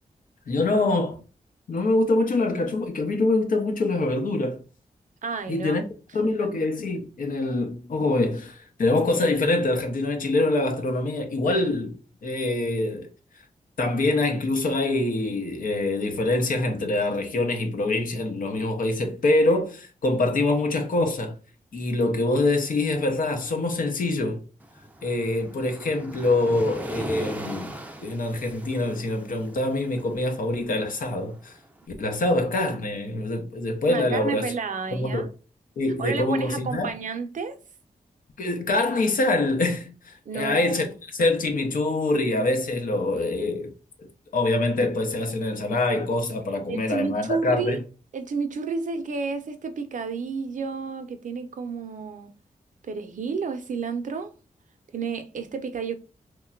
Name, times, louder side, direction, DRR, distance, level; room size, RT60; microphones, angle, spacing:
voice 1, 0.5-1.2 1.7-4.6 5.5-5.8 6.1-13.1 13.8-21.4 21.7-24.4 25.0-27.7 28.0-31.5 32.0-34.5 34.9-35.3 35.8-36.9 38.4-40.8 41.1-43.7 44.3-47.8, left 2 dB, 75° left, 0.7 m, -25 dB
voice 2, 5.2-5.8 6.2-6.3 33.9-35.3 36.0-37.6 40.3-40.9 46.7-47.8 48.1-52.3 52.8-54.3 54.9-56.0, right 5 dB, 65° right, 0.5 m, -31 dB
Waves surf, 24.6-31.7, right 1 dB, 10° right, 0.4 m, -39 dB
3.0 x 2.2 x 2.2 m
cardioid pair, 80°, 14 cm